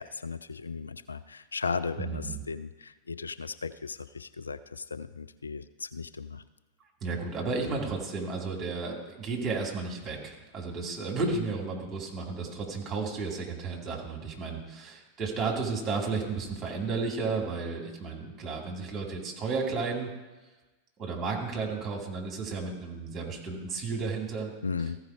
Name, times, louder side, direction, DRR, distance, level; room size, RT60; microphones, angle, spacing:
voice 1, 0.0-6.4 24.6-25.0, left 5 dB, 75° left, 11 dB, 0.4 m, -36 dB
voice 2, 2.0-2.4 7.0-20.1 21.0-24.5, right 4 dB, 25° right, 0 dB, 2.5 m, -33 dB
15.0 x 5.0 x 4.7 m, 1.2 s
figure-of-eight pair, 90°, 0 cm